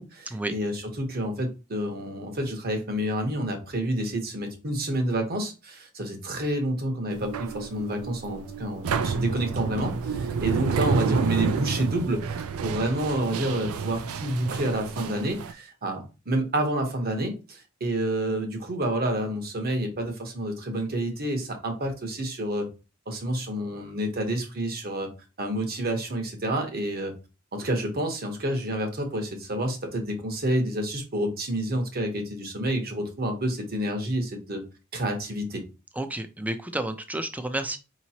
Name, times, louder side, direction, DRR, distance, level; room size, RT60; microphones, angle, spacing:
voice 1, 0.0-22.7 23.1-25.1 25.4-27.1 27.5-34.6 34.9-35.6, right 1 dB, 45° right, 4 dB, 1.0 m, -29 dB
sound 1, 7.1-15.5, right 5 dB, 85° right, 0.4 m, -29 dB
voice 2, 36.0-37.8, right 1 dB, 5° right, 8 dB, 0.4 m, -31 dB
4.9 x 3.0 x 2.8 m, 0.30 s
head